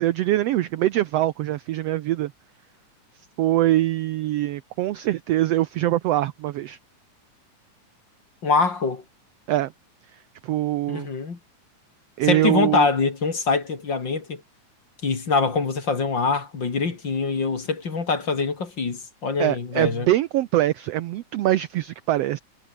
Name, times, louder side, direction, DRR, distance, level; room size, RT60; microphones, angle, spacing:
voice 1, 0.0-2.3 3.4-6.8 9.5-9.7 10.4-11.1 12.2-12.9 19.4-22.4, right 14 dB, 80° right, 1.4 m, -23 dB
voice 2, 8.4-9.0 10.9-11.4 12.2-14.4 15.0-20.1, left 4 dB, 35° left, 3.0 m, -24 dB
omnidirectional pair, 3.7 m